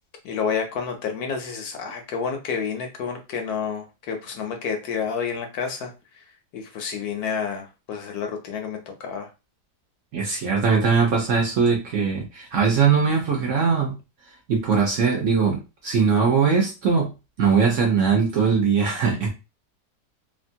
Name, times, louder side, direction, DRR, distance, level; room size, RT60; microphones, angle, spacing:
voice 1, 0.2-5.9 6.5-9.3, left 6 dB, 70° left, 4 dB, 1.1 m, -29 dB
voice 2, 10.1-14.0 14.5-17.1 17.4-19.3, right 5 dB, 60° right, 0 dB, 0.9 m, -21 dB
2.9 x 2.4 x 2.6 m, 0.28 s
omnidirectional pair, 1.8 m